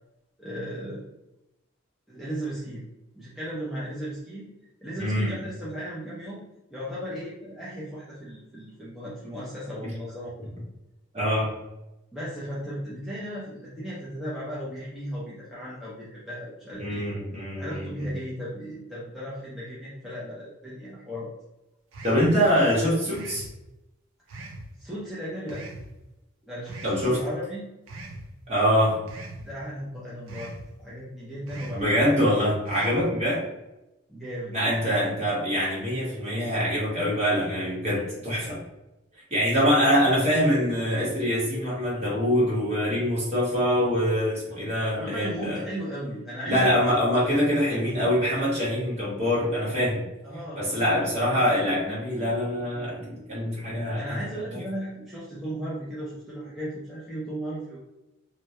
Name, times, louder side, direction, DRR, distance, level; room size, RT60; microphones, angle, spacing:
voice 1, 0.4-1.1 2.1-2.8 3.1-4.5 4.8-6.4 6.7-10.5 12.1-17.2 17.5-21.3 24.3-24.5 24.8-25.6 26.4-27.7 29.4-30.5 30.8-32.1 33.0-33.1 34.1-34.6 39.7-39.9 44.9-46.8 50.2-51.1 54.0-57.8, equal, ahead, -9 dB, 0.5 m, -36 dB
voice 2, 5.0-5.3 11.1-11.5 16.8-18.1 22.0-23.4 26.8-27.2 28.5-29.0 31.7-33.4 34.5-38.6 39.3-45.6 46.4-50.0 50.6-54.3, equal, 35° right, -6 dB, 1.0 m, -24 dB
sound 1, 21.9-22.3 23.1-23.5 24.3-24.7 25.5-25.9 26.7-27.0 27.9-28.2 29.1-29.4 30.3-30.6 31.5-31.8 32.7-33.0, right 2 dB, 85° right, 0.5 m, -40 dB
2.2 x 2.1 x 2.8 m, 0.95 s
head